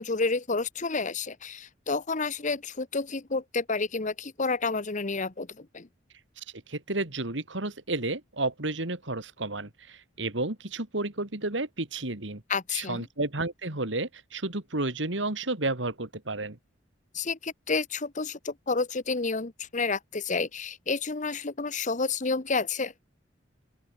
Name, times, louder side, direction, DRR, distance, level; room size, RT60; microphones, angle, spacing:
voice 1, 0.0-5.9 12.5-13.0 17.1-22.9, left 4 dB, 40° left, 1.2 m, -30 dB
voice 2, 6.4-12.4 12.7-16.6, right 2 dB, 70° right, 2.8 m, -32 dB
open air
head